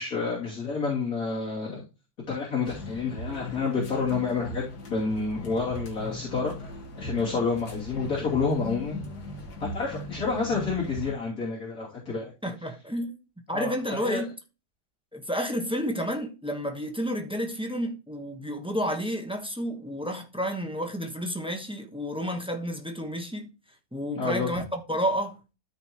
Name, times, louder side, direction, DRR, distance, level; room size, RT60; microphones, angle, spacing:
voice 1, 0.0-1.8 2.3-6.5 7.0-9.0 9.6-12.3 13.5-14.2 24.2-24.5, left 4 dB, 60° left, 3.2 m, -29 dB
sound 1, 2.6-11.1, left 2 dB, 85° left, 2.2 m, -38 dB
voice 2, 12.4-13.1 13.5-14.3 15.1-23.5 23.9-25.4, equal, 5° right, 1.0 m, -30 dB
13.0 x 5.0 x 3.0 m
omnidirectional pair, 1.7 m